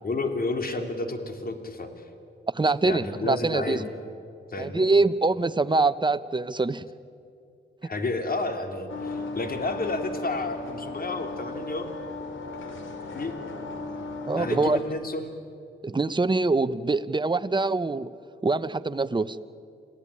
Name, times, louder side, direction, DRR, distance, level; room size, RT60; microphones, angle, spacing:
voice 1, 0.0-2.1 2.8-3.9 4.5-4.8 7.8-11.9 13.1-13.4 14.4-15.3, left 2 dB, 50° left, 6 dB, 3.2 m, -31 dB
voice 2, 2.5-3.8 4.6-6.8 14.3-14.8 15.8-18.1 18.4-19.4, right 3 dB, 25° right, 13 dB, 1.0 m, -24 dB
sound 1, 8.9-14.8, left 3 dB, 80° left, 3.2 m, -36 dB
28.0 x 17.0 x 9.8 m, 2.5 s
cardioid pair, 70°, 20 cm